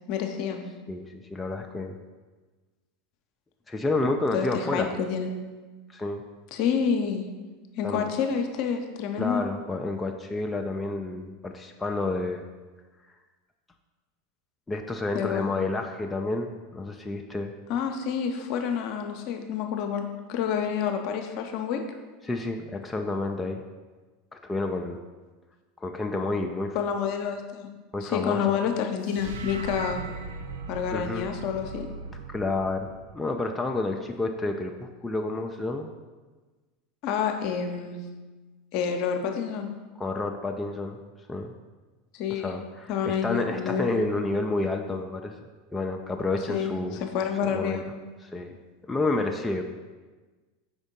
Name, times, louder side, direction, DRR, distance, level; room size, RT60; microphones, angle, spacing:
voice 1, 0.1-0.6 4.3-5.3 6.5-7.3 7.8-9.4 15.1-15.5 17.7-21.8 26.7-27.7 28.0-30.0 30.7-31.9 37.0-38.0 38.7-39.7 42.1-42.5 42.9-44.0 46.5-46.7 47.0-47.8, left 7 dB, 55° left, 5 dB, 0.7 m, -28 dB
voice 2, 0.9-2.0 3.7-4.9 5.9-6.2 7.8-8.1 9.2-12.5 14.7-17.5 22.2-23.6 24.3-25.0 25.8-26.8 27.9-28.6 30.9-31.3 32.3-35.9 40.0-41.0 41.3-41.5 42.3-45.4 45.7-47.0 47.4-47.8 48.2-48.6 48.9-49.6, left 2 dB, 15° left, 3 dB, 0.4 m, -30 dB
sound 1, 29.0-33.4, right 4 dB, 70° right, 0.5 m, -38 dB
5.2 x 3.6 x 5.3 m, 1.3 s
hypercardioid pair, 90°, 0 cm